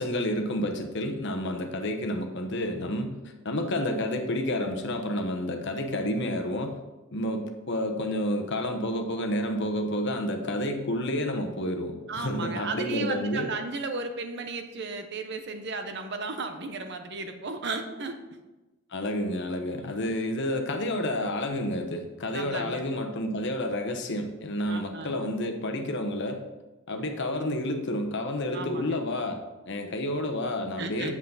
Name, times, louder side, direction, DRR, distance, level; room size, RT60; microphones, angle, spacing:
voice 1, 0.0-3.1 3.4-6.8 7.1-13.5 18.9-26.4 26.9-31.2, left 1 dB, 55° left, 5 dB, 1.0 m, -30 dB
voice 2, 12.1-18.2 19.8-19.9 22.3-22.9 24.7-25.2 28.5-29.0 30.8-31.2, right 3 dB, 55° right, 7 dB, 0.8 m, -35 dB
8.4 x 7.2 x 4.0 m, 1.1 s
head